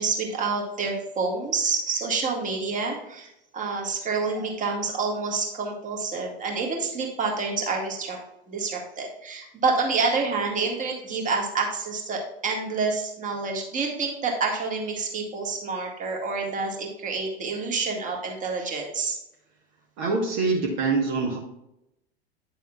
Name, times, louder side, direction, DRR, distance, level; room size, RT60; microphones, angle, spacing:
voice 1, 0.0-8.2 8.5-19.2, right 4 dB, 25° right, 0 dB, 1.9 m, -28 dB
voice 2, 20.0-21.4, right 3 dB, 45° right, -1 dB, 1.3 m, -24 dB
9.5 x 6.9 x 2.4 m, 0.85 s
figure-of-eight pair, 90°, 31 cm